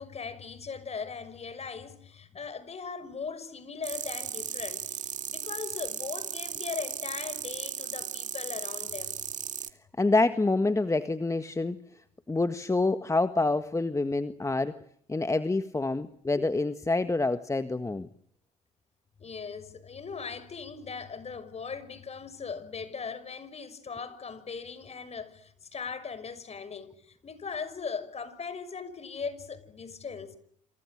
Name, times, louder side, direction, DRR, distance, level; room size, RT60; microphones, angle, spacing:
voice 1, 0.0-9.2 19.2-30.4, left 5 dB, 40° left, 5.8 m, -39 dB
sound 1, 3.8-9.7, right 8 dB, 50° right, 2.3 m, -36 dB
voice 2, 10.0-11.8 12.3-14.8 15.1-18.1, left 2 dB, 20° left, 1.6 m, -27 dB
28.0 x 27.5 x 6.5 m
hypercardioid pair, 55°, 16 cm